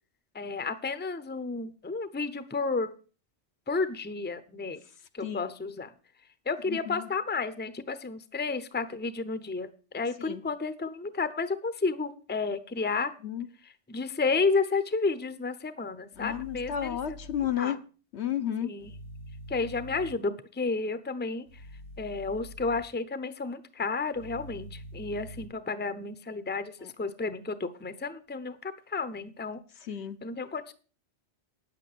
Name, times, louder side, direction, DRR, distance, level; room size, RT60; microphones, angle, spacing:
voice 1, 0.3-2.9 3.7-4.8 5.1-5.9 6.5-9.7 9.9-13.1 13.6-17.2 17.6-17.8 18.7-18.9 19.5-21.5 22.0-29.6 30.2-30.7, left 4 dB, 10° left, 0.7 m, -31 dB
voice 2, 5.2-5.5 6.7-7.1 10.2-10.4 13.2-13.5 16.2-17.8 18.1-18.7 26.8-26.9 29.9-30.2, left 10 dB, 70° left, 1.1 m, -32 dB
sound 1, 16.1-17.5 18.8-20.1 21.5-22.8 24.1-25.5, equal, 85° left, 3.1 m, -45 dB
9.8 x 8.3 x 6.8 m
omnidirectional pair, 1.2 m